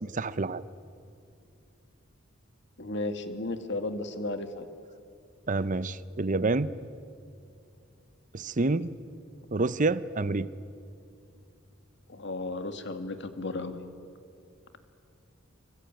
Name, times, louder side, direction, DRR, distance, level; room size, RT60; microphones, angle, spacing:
voice 1, 0.0-0.6 5.5-6.7 8.3-9.0 9.5-10.5, right 3 dB, 40° right, 15 dB, 0.7 m, -28 dB
voice 2, 2.8-4.7 12.1-13.8, left 2 dB, 60° left, 8 dB, 2.0 m, -34 dB
26.5 x 24.0 x 9.1 m, 2.5 s
head